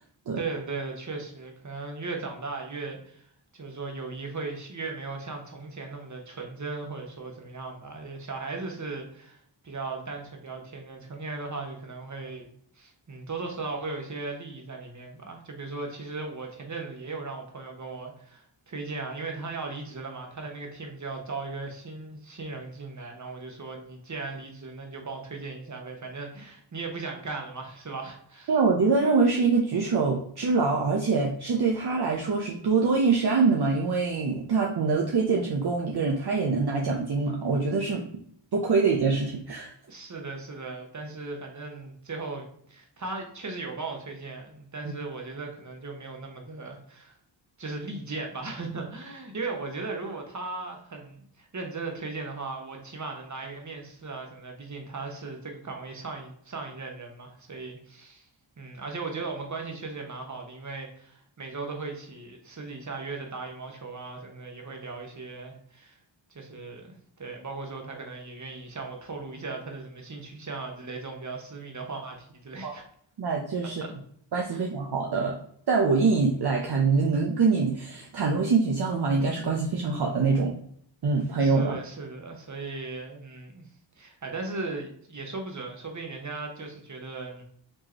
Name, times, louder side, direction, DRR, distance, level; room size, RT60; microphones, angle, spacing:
voice 1, 0.4-3.3 3.5-12.5 12.7-28.5 39.9-47.2 47.6-58.3 58.6-66.0 66.3-72.8 73.6-73.9 74.5-74.6 81.4-83.6 84.0-87.4, right 3 dB, 40° right, 2 dB, 1.1 m, -37 dB
voice 2, 28.5-38.0 38.5-39.7 44.8-44.9 72.6-72.7 73.2-73.8 74.3-75.3 75.7-80.5 81.0-81.7, right 4 dB, 55° right, -1 dB, 0.7 m, -24 dB
4.5 x 3.0 x 2.9 m, 0.64 s
cardioid pair, 50°, 47 cm